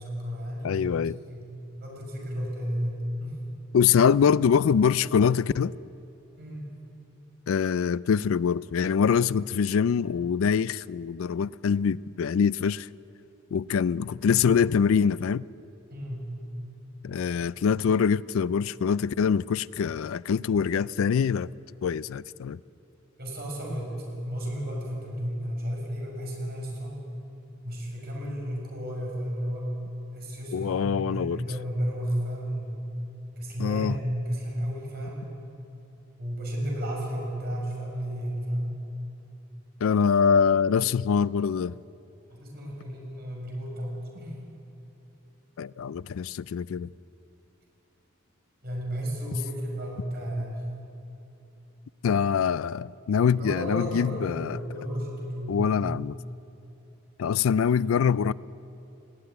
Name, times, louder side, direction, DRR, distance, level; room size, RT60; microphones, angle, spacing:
voice 1, 0.0-1.0 1.3-1.5 1.8-3.4 6.4-6.7 15.9-16.3 23.2-23.9 24.2-27.0 27.6-29.7 30.1-32.9 33.4-35.3 36.2-38.7 42.3-44.3 48.6-50.7 53.3-55.7 57.8-57.9, equal, 50° right, 6.3 m, -33 dB
voice 2, 0.6-1.2 3.7-5.7 7.5-12.9 13.5-15.4 17.0-21.5 21.8-22.6 30.5-31.4 33.6-34.0 39.8-41.7 45.6-46.9 52.0-54.6 55.5-56.2 57.2-58.3, left 6 dB, 80° left, 0.4 m, -24 dB
19.5 x 15.0 x 9.5 m
head